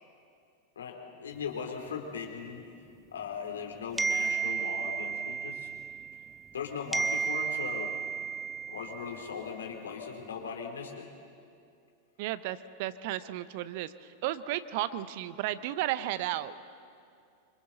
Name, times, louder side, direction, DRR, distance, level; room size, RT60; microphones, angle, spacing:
voice 1, 0.8-2.6 3.1-5.7 6.5-7.9 8.7-11.1, left 6 dB, 65° left, 2 dB, 2.9 m, -38 dB
sound 1, 4.0-6.6 6.9-9.5, right 6 dB, 10° right, 0.7 m, -33 dB
voice 2, 12.2-16.5, right 14 dB, 50° right, 15 dB, 0.7 m, -34 dB
26.5 x 25.0 x 3.9 m, 2.4 s
figure-of-eight pair, 90°, 0 cm